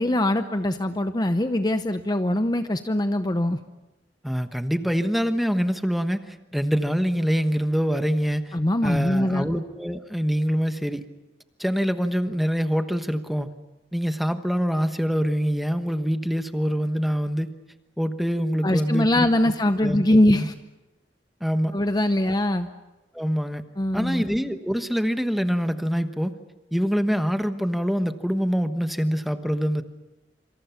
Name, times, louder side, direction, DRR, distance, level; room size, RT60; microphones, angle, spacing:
voice 1, 0.0-3.6 8.5-9.5 18.6-20.5 21.7-22.7 23.8-24.2, left 1 dB, 25° left, 9 dB, 0.8 m, -22 dB
voice 2, 4.2-8.6 8.8-11.0 11.6-13.5 13.9-17.5 18.0-19.5 19.8-20.5 21.4-21.8 23.1-23.6 23.9-26.3 26.7-29.8, equal, ahead, 8 dB, 1.2 m, -25 dB
27.0 x 26.0 x 5.8 m, 1.0 s
head